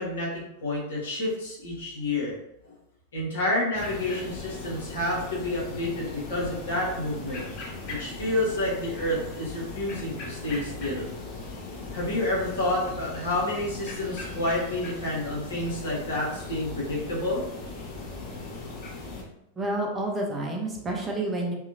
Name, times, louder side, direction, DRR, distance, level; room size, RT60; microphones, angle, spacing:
voice 1, 0.0-2.3 3.1-7.4 7.9-11.1 11.9-17.4 18.6-18.7, left 1 dB, 65° left, -5 dB, 1.0 m, -29 dB
sound 1, 3.7-19.2, left 3 dB, 40° left, 0.7 m, -38 dB
voice 2, 19.6-21.5, right 1 dB, 15° right, -1 dB, 0.5 m, -29 dB
2.7 x 2.3 x 2.6 m, 0.83 s
figure-of-eight pair, 90°, 0 cm